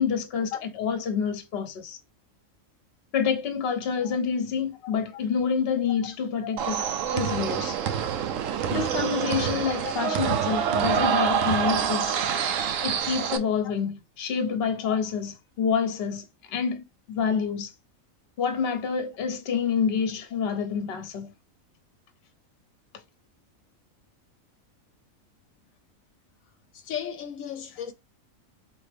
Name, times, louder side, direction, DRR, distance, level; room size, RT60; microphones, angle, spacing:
voice 1, 0.0-0.5 0.8-2.0 3.1-6.8 7.1-7.8 8.7-12.2 12.8-17.7 18.4-21.3, left 6 dB, 55° left, 0.9 m, -28 dB
sound 1, 6.6-13.4, right 8 dB, 70° right, 0.9 m, -26 dB
voice 2, 9.8-10.2 14.8-15.0 26.7-27.9, left 9 dB, 75° left, 1.0 m, -36 dB
4.2 x 3.7 x 3.4 m
omnidirectional pair, 1.4 m